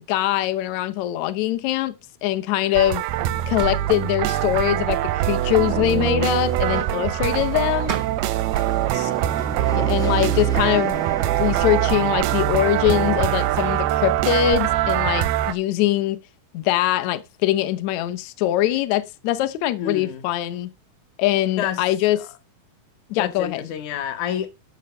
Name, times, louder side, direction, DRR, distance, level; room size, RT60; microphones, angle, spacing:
voice 1, 0.0-1.9 2.2-3.0 3.5-8.0 8.9-9.1 9.6-11.0 11.4-16.2 16.5-20.7 21.2-22.2 23.1-23.6, left 13 dB, 85° left, 1.6 m, -22 dB
sound 1, 2.8-15.5, right 13 dB, 90° right, 2.6 m, -23 dB
sound 2, 3.6-3.9 7.5-7.6 7.9-8.2, right 5 dB, 65° right, 0.6 m, -33 dB
sound 3, 6.5-14.6, right 2 dB, 5° left, 0.6 m, -37 dB
voice 2, 19.8-20.2 21.6-21.8 22.1-22.3 23.2-24.5, left 9 dB, 65° left, 2.2 m, -29 dB
12.0 x 5.6 x 6.6 m
omnidirectional pair, 4.3 m